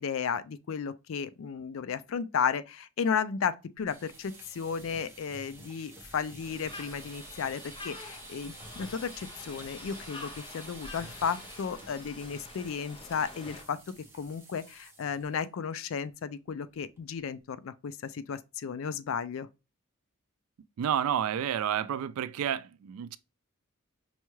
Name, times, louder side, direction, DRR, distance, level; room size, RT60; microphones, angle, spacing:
voice 1, 0.0-13.8 14.1-19.5, left 6 dB, 65° left, 0.4 m, -34 dB
sound 1, 3.8-15.4 15.7-16.0 16.3-16.4 16.8-17.2, right 2 dB, 10° right, 0.7 m, -50 dB
sound 2, 6.4-13.6, left 2 dB, 25° left, 0.7 m, -47 dB
voice 2, 20.8-23.2, right 9 dB, 80° right, 0.3 m, -30 dB
5.5 x 2.3 x 3.1 m
head